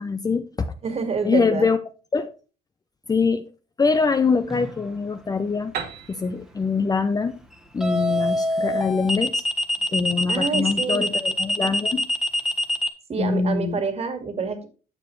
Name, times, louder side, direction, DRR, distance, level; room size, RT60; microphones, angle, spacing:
voice 1, 0.0-0.7 1.2-1.8 2.1-2.3 3.1-3.5 3.8-5.7 6.1-7.4 7.7-9.4 9.9-12.1 13.2-13.8, left 4 dB, 20° left, 0.7 m, -23 dB
voice 2, 0.8-1.7 10.3-11.0 13.1-14.7, right 5 dB, 40° right, 2.2 m, -27 dB
sound 1, 4.5-4.8 7.8-12.9, left 1 dB, ahead, 1.4 m, -24 dB
Piano, 5.7-9.4, right 7 dB, 70° right, 2.1 m, -39 dB
9.8 x 6.7 x 3.2 m
cardioid pair, 110°, 17 cm